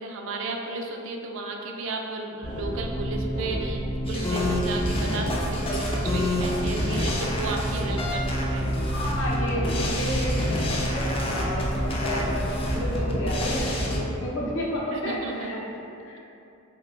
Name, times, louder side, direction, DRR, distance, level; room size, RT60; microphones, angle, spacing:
voice 1, 0.0-8.2 8.5-8.7 14.9-15.7, right 3 dB, 70° right, 2 dB, 0.3 m, -34 dB
sound 1, 2.4-14.0, equal, 45° left, 0.8 m, -29 dB
sound 2, 4.1-14.0, left 1 dB, 30° left, 0.3 m, -29 dB
voice 2, 8.9-15.6 16.0-16.2, equal, 80° left, -5 dB, 0.7 m, -31 dB
2.7 x 2.2 x 3.8 m, 2.6 s
head